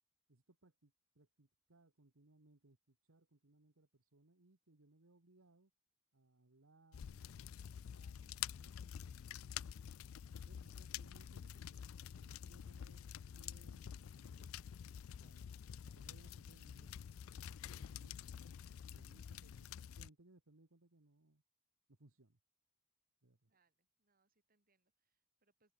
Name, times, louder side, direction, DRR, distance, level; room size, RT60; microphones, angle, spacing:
voice 1, 0.3-5.7 6.1-9.7 10.5-11.8 12.1-14.5 14.8-15.5 15.8-18.3 18.9-21.4 21.9-22.4 23.2-23.5, right 2 dB, 85° right, 1.6 m, -68 dB
sound 1, 6.9-20.1, left 9 dB, 85° left, 0.4 m, -49 dB
voice 2, 23.5-25.7, right 3 dB, 45° right, 4.1 m, -82 dB
head